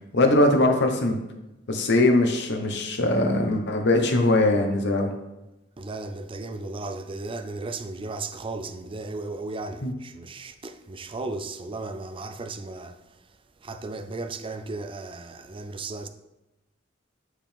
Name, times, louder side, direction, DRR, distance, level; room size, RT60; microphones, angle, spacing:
voice 1, 0.1-1.2 1.7-5.1 9.8-9.9, left 2 dB, 60° left, 1.0 m, -21 dB
voice 2, 5.8-16.1, right 3 dB, 25° right, 0.5 m, -35 dB
7.7 x 4.9 x 3.4 m
head